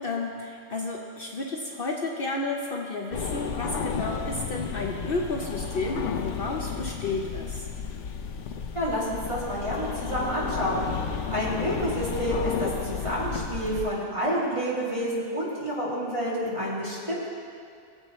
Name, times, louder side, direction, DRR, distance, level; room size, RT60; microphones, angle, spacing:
voice 1, 0.0-7.7, left 3 dB, 55° left, 0 dB, 0.9 m, -32 dB
sound 1, 3.1-13.9, left 6 dB, 80° left, 1.1 m, -32 dB
voice 2, 8.7-10.9 11.3-17.3, equal, 25° right, -8 dB, 2.7 m, -29 dB
20.5 x 7.8 x 3.1 m, 2.4 s
omnidirectional pair, 1.2 m